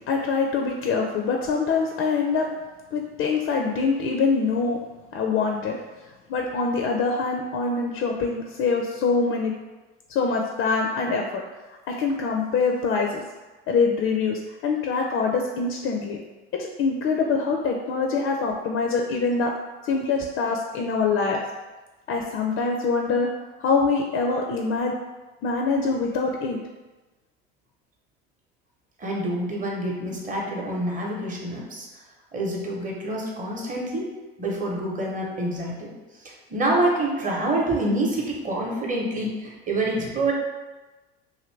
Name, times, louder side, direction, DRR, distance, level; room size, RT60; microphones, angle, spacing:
voice 1, 0.0-2.5 2.9-4.8 5.1-9.5 10.1-11.4 11.9-13.2 13.7-16.2 16.5-19.5 19.8-21.4 22.1-23.3 23.6-24.9 25.4-26.6, left 4 dB, 40° left, 1 dB, 0.4 m, -24 dB
voice 2, 29.0-31.9 32.3-34.1 34.4-35.9 36.2-40.3, right 1 dB, 25° right, -2 dB, 0.9 m, -27 dB
2.6 x 2.6 x 3.2 m, 1.2 s
hypercardioid pair, 85°, 32 cm